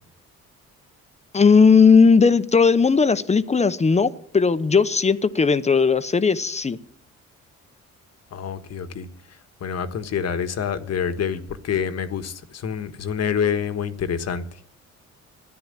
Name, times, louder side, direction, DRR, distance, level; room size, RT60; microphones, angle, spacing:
voice 1, 1.3-6.8, left 5 dB, 20° left, 14 dB, 0.8 m, -17 dB
voice 2, 8.3-9.1 9.6-14.4, left 7 dB, 55° left, 10 dB, 1.4 m, -27 dB
13.0 x 10.0 x 8.9 m, 0.62 s
cardioid pair, 90°, 30 cm